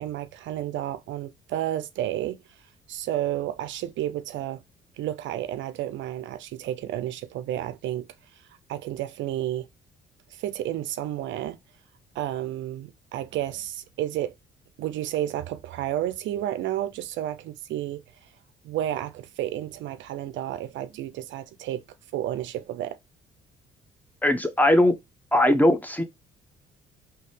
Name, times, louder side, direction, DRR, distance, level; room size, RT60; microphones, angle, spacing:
voice 1, 0.0-2.4 2.9-4.6 5.0-8.1 8.7-9.7 10.3-11.6 12.2-14.3 14.8-18.0 18.6-21.8 22.1-23.0, right 12 dB, 70° right, 0.4 m, -31 dB
voice 2, 24.2-24.9 25.3-26.0, left 1 dB, 10° left, 0.9 m, -19 dB
4.0 x 2.8 x 3.2 m
supercardioid pair, 65°, 21 cm